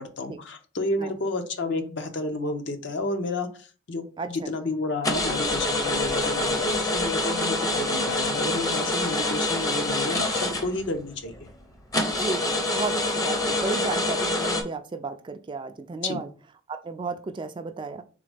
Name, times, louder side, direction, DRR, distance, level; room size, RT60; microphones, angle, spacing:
voice 1, 0.0-11.5 16.0-16.2, left 2 dB, 60° left, 6 dB, 0.7 m, -31 dB
voice 2, 4.2-4.5 7.7-7.9 12.1-16.3 16.7-18.0, right 3 dB, 25° right, 9 dB, 0.3 m, -33 dB
sound 1, 5.0-11.1 11.5-11.6 11.9-14.6, left 2 dB, 20° left, 0.6 m, -26 dB
3.8 x 3.6 x 3.4 m, 0.38 s
head